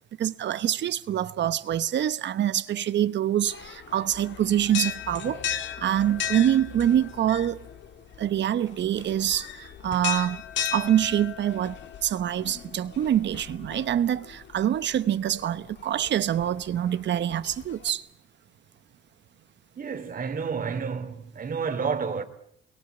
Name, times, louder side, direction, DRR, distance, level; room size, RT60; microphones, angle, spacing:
voice 1, 0.2-5.4 5.8-7.7 8.2-10.4 10.7-18.1, right 11 dB, 65° right, 1.1 m, -25 dB
sound 1, 3.5-17.9, left 9 dB, 70° left, 1.7 m, -37 dB
voice 2, 19.8-22.2, right 5 dB, 45° right, 3.0 m, -30 dB
29.0 x 22.0 x 8.0 m
cardioid pair, 90°, 20 cm